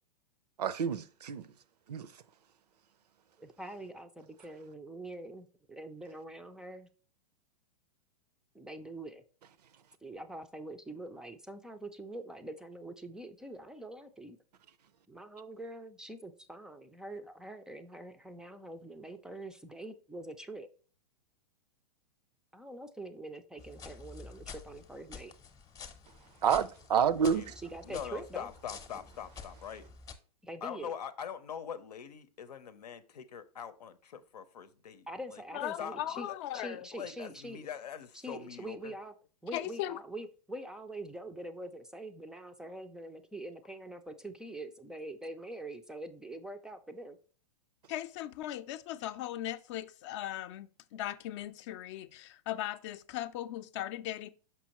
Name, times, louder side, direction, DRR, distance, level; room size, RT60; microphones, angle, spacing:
voice 1, 0.6-1.4 1.9-2.1 26.4-27.5, right 7 dB, 85° right, 0.6 m, -28 dB
voice 2, 3.4-6.9 8.5-9.2 10.0-14.4 15.1-20.7 22.5-25.3 27.6-28.5 30.4-30.9 35.1-36.3 36.5-37.7 38.1-39.1 39.4-47.2, right 1 dB, 5° right, 0.3 m, -44 dB
sound 1, 23.6-30.1, left 5 dB, 20° left, 0.8 m, -50 dB
voice 3, 27.8-29.9 30.6-35.4 35.8-36.0 36.3-36.4 36.9-38.9, left 8 dB, 85° left, 0.8 m, -43 dB
voice 4, 35.5-36.9 39.5-40.0 47.9-54.3, left 13 dB, 45° left, 0.5 m, -38 dB
6.0 x 5.5 x 2.9 m
hypercardioid pair, 130°, 20 cm